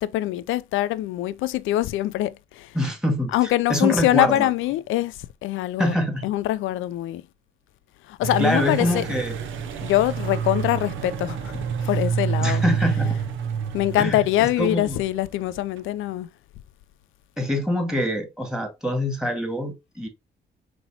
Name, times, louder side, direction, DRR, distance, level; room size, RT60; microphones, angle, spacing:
voice 1, 0.0-2.8 3.3-6.0 6.2-7.2 8.0-9.1 9.8-12.6 13.7-16.3, left 14 dB, 85° left, 0.4 m, -24 dB
voice 2, 2.7-3.3 3.7-4.5 5.8-6.3 8.4-9.3 12.4-13.2 14.0-14.2 14.6-15.0 17.4-20.1, equal, 5° right, 1.8 m, -24 dB
sound 1, 8.2-15.8, right 7 dB, 75° right, 0.6 m, -28 dB
5.4 x 3.0 x 2.8 m
cardioid pair, 90°, 20 cm